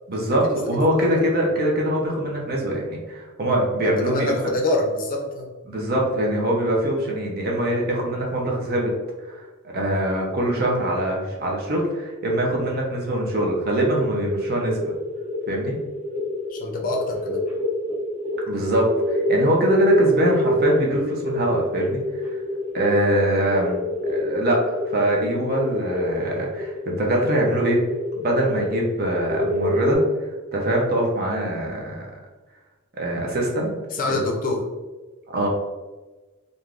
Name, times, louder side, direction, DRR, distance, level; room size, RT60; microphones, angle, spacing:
voice 1, 0.1-4.4 5.7-8.9 9.3-14.9 15.5-15.8 18.5-22.0 22.7-27.8 28.2-32.0 33.0-33.8 34.1-34.3 35.3-35.5, right 1 dB, 45° right, -1 dB, 0.6 m, -23 dB
voice 2, 3.8-5.5 16.5-17.4 33.9-34.6, left 2 dB, 40° left, 1 dB, 0.5 m, -26 dB
sound 1, 13.7-29.9, left 1 dB, 10° right, 0.8 m, -27 dB
3.3 x 2.6 x 2.4 m, 1.2 s
head